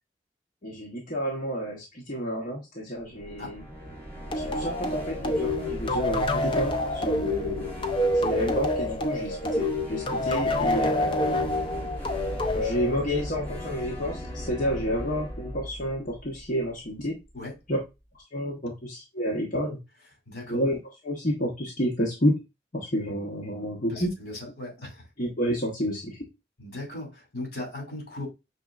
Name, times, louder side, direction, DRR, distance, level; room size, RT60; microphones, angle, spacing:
voice 1, 0.6-3.6 4.3-7.7 8.2-11.5 12.5-17.2 17.7-17.8 18.3-19.8 20.5-20.8 21.0-22.4 22.7-24.1 25.2-26.2, equal, 45° left, 1.0 m, -30 dB
sound 1, 3.0-17.0, equal, 10° left, 1.4 m, -38 dB
sound 2, 4.3-13.5, left 1 dB, 30° left, 0.5 m, -27 dB
voice 2, 20.3-20.6 23.9-25.0 26.6-28.3, left 2 dB, 65° left, 2.5 m, -38 dB
6.0 x 3.0 x 2.4 m
head